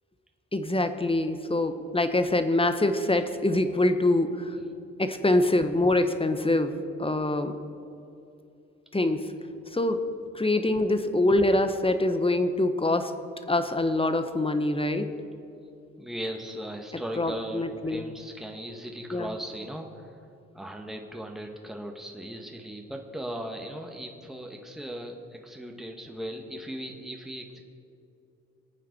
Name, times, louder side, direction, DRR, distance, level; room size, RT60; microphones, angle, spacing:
voice 1, 0.5-4.5 5.0-7.6 8.9-9.3 9.7-13.1 13.5-15.1 17.2-18.1 19.1-19.3, left 2 dB, 15° left, 9 dB, 1.3 m, -25 dB
voice 2, 16.0-20.3 20.5-27.6, equal, ahead, 2 dB, 1.8 m, -38 dB
24.0 x 9.1 x 4.7 m, 2.7 s
hypercardioid pair, 40°, 37 cm